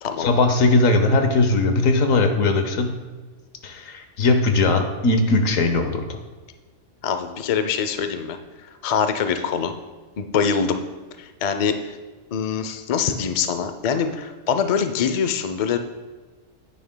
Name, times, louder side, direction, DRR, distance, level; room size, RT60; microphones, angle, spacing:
voice 1, 0.2-2.9 3.6-6.2, left 3 dB, 90° left, 6 dB, 1.3 m, -19 dB
voice 2, 7.0-8.4 8.8-9.7 10.2-10.8 11.2-12.0 12.3-15.8, left 6 dB, 50° left, 8 dB, 0.4 m, -24 dB
9.8 x 9.5 x 2.2 m, 1.3 s
omnidirectional pair, 1.3 m